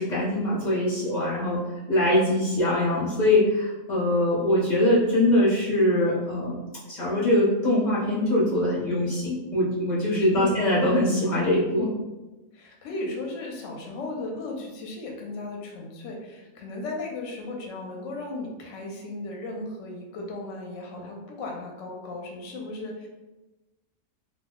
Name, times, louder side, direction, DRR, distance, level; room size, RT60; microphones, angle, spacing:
voice 1, 0.0-1.6 1.9-6.6 6.9-11.9, left 1 dB, 45° left, -7 dB, 0.6 m, -23 dB
voice 2, 10.2-10.6 12.5-23.1, left 2 dB, 70° left, 0 dB, 0.9 m, -36 dB
2.3 x 2.0 x 3.5 m, 1.1 s
omnidirectional pair, 1.4 m